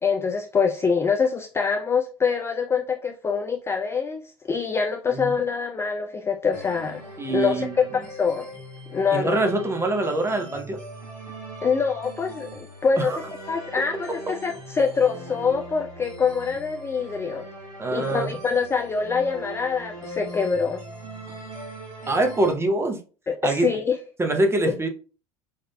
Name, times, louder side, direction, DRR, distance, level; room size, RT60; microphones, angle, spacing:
voice 1, 0.0-7.0 7.3-8.5 8.9-9.4 11.6-17.5 17.9-20.8 23.3-24.0 24.7-24.8, left 5 dB, 15° left, 0.3 m, -25 dB
sound 1, 6.5-22.5, right 1 dB, 80° right, 1.9 m, -40 dB
voice 2, 7.2-7.7 9.1-10.8 13.0-13.2 17.8-18.3 22.1-23.0 23.4-23.7 24.2-24.9, right 2 dB, 15° right, 0.8 m, -24 dB
5.5 x 2.5 x 2.2 m
figure-of-eight pair, 70°, 17 cm